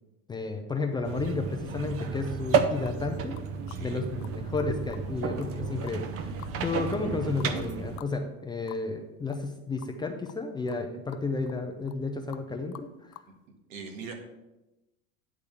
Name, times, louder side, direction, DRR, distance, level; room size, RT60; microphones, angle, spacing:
voice 1, 0.3-3.4 3.8-6.3 6.6-13.2, left 3 dB, 10° left, 4 dB, 0.4 m, -32 dB
sound 1, 1.0-8.0, right 5 dB, 35° right, 0.7 m, -32 dB
sound 2, 2.8-3.0 3.3-3.8 4.2-4.3 4.6-5.0 5.4-5.5 5.8-6.6 6.9-7.0 7.4-7.5 8.0-8.1 8.4-8.5 8.7-8.8 9.3-9.5 9.8-9.9 10.3-10.4 10.7-10.8 11.1-11.6 11.9-12.0 12.3-12.5 12.7-13.3, left 16 dB, 60° left, 0.6 m, -48 dB
voice 2, 3.7-4.0 13.7-14.1, right 5 dB, 85° right, 4 dB, 1.7 m, -41 dB
10.0 x 3.6 x 6.6 m, 1.0 s
supercardioid pair, 140°, 39 cm